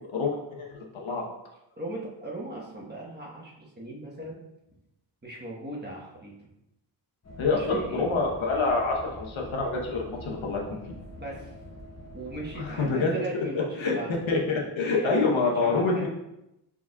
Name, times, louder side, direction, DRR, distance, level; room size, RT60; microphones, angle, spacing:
voice 1, 0.1-1.2 7.4-10.8 12.6-13.4 13.8-14.0 14.3-16.1, left 3 dB, 75° left, 0 dB, 1.0 m, -27 dB
voice 2, 1.8-4.4 5.2-6.3 7.5-8.1 11.1-11.5 12.1-14.1 15.0-16.1, right 2 dB, 20° right, -4 dB, 1.1 m, -38 dB
sound 1, 7.2-12.9, left 1 dB, 35° left, 0.8 m, -44 dB
4.6 x 4.3 x 2.3 m, 0.88 s
wide cardioid pair, 100°, 47 cm